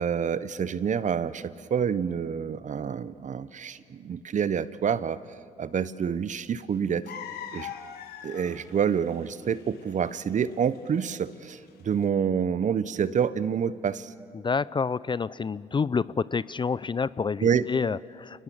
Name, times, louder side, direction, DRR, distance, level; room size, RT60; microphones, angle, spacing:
voice 1, 0.0-5.2 5.6-7.1 7.5-7.7 8.2-14.1 17.4-17.7, right 7 dB, 45° right, 16 dB, 1.0 m, -27 dB
sound 1, 7.0-12.0, left 9 dB, 65° left, 1.6 m, -41 dB
voice 2, 14.3-18.4, left 5 dB, 30° left, 19 dB, 0.5 m, -28 dB
29.0 x 20.0 x 7.1 m, 2.2 s
hypercardioid pair, 50°, 17 cm